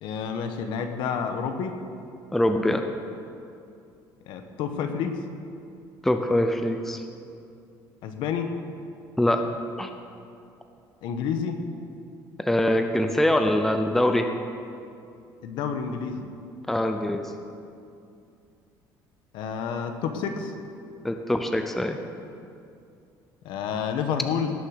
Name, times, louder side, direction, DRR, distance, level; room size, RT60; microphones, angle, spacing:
voice 1, 0.0-1.7 4.3-5.2 8.0-8.5 11.0-11.6 15.4-16.3 19.3-20.5 23.4-24.5, left 7 dB, 70° left, 6 dB, 1.2 m, -29 dB
voice 2, 2.3-2.8 6.0-7.0 9.2-9.4 9.8-9.9 12.4-14.3 16.7-17.3 21.0-22.0, left 1 dB, 5° left, 6 dB, 0.6 m, -23 dB
17.5 x 6.5 x 6.6 m, 2.5 s
cardioid pair, 155°, 8 cm